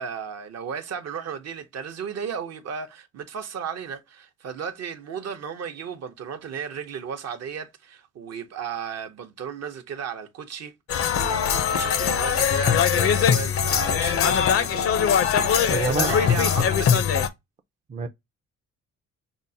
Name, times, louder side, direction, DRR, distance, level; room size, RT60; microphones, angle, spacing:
voice 1, 0.0-10.7 11.1-15.2 15.5-17.2, right 7 dB, 55° right, 0.7 m, -35 dB
sound 1, 10.9-17.3, left 7 dB, 50° left, 0.5 m, -21 dB
voice 2, 15.7-16.2 17.9-18.1, right 4 dB, 25° right, 0.4 m, -26 dB
5.3 x 2.0 x 2.6 m
cardioid pair, 90°, 30 cm